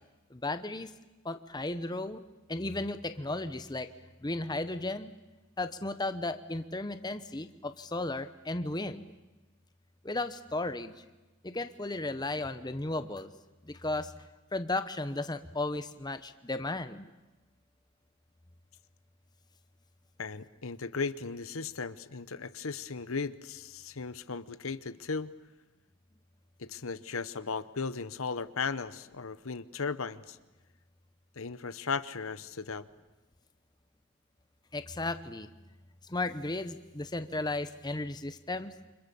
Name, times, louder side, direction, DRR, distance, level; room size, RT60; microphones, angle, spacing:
voice 1, 0.3-0.9 1.2-2.2 2.5-3.9 4.2-5.1 5.6-9.1 10.0-11.0 11.4-13.3 13.6-14.1 14.5-17.1 34.7-35.5 36.1-38.7, left 2 dB, 20° left, 10 dB, 0.9 m, -35 dB
voice 2, 20.2-25.3 26.6-30.4 31.3-32.9, left 4 dB, 65° left, 14 dB, 1.0 m, -36 dB
28.5 x 26.5 x 7.0 m, 1.1 s
head